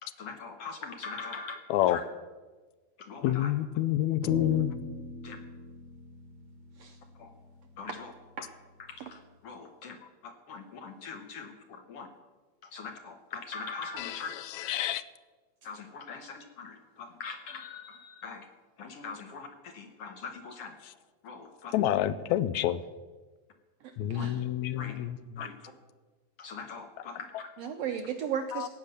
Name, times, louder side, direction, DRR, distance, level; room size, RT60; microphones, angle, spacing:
voice 1, 0.0-1.6 1.9-2.0 3.0-3.5 5.2-5.4 7.2-7.3 7.8-8.1 8.9-10.0 10.2-12.1 12.6-14.3 15.6-18.5 18.8-20.7 21.2-21.7 24.1-24.3 24.8-24.9 25.4-25.7 26.4-27.5, left 5 dB, 65° left, 6 dB, 1.7 m, -42 dB
voice 2, 3.2-4.7 14.0-15.0 21.7-22.8 24.0-25.5 28.5-28.7, left 12 dB, 80° left, 16 dB, 1.7 m, -28 dB
sound 1, 4.2-8.7, left 1 dB, 55° right, 1.3 m, -43 dB
voice 3, 27.6-28.7, right 8 dB, 75° right, 6 dB, 1.5 m, -34 dB
15.5 x 9.7 x 6.7 m, 1.3 s
omnidirectional pair, 3.7 m